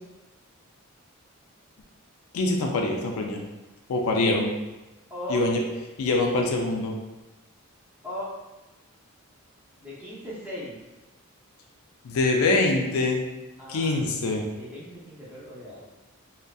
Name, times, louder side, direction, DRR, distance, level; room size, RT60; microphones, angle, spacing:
voice 1, 2.3-3.4 3.9-4.5 5.3-5.6 6.0-6.9 12.0-13.2 13.7-14.4, left 2 dB, 75° left, 1 dB, 0.4 m, -24 dB
voice 2, 5.1-5.4 8.0-8.3 9.8-10.8 13.6-13.9 14.6-15.9, left 1 dB, 5° right, -8 dB, 0.5 m, -37 dB
2.5 x 2.1 x 2.3 m, 1.1 s
head